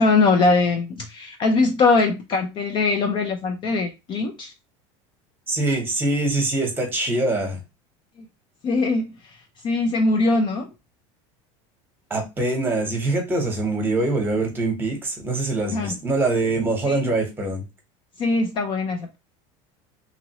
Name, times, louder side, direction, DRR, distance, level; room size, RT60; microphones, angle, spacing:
voice 1, 0.0-4.5 8.6-9.4 9.6-10.7 15.7-16.0 16.8-17.1 18.2-19.2, left 3 dB, 35° left, 0.4 m, -21 dB
voice 2, 5.5-7.6 12.1-17.6, right 2 dB, 15° right, 1.0 m, -24 dB
3.0 x 2.5 x 2.8 m
supercardioid pair, 140°, 15 cm